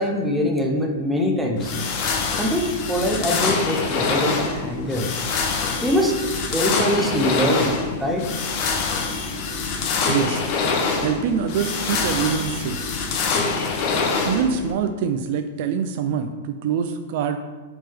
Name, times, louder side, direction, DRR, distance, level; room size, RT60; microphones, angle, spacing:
voice 1, 0.0-1.7 2.3-5.1 5.8-6.2 6.5-7.7 8.0-8.3, equal, ahead, 0 dB, 0.7 m, -23 dB
sound 1, 1.6-14.7, left 4 dB, 40° left, 0.8 m, -25 dB
voice 2, 10.1-10.4 11.0-12.9 14.3-17.4, right 7 dB, 50° right, 7 dB, 0.4 m, -24 dB
8.4 x 3.6 x 3.5 m, 1.4 s
hypercardioid pair, 150°, 0 cm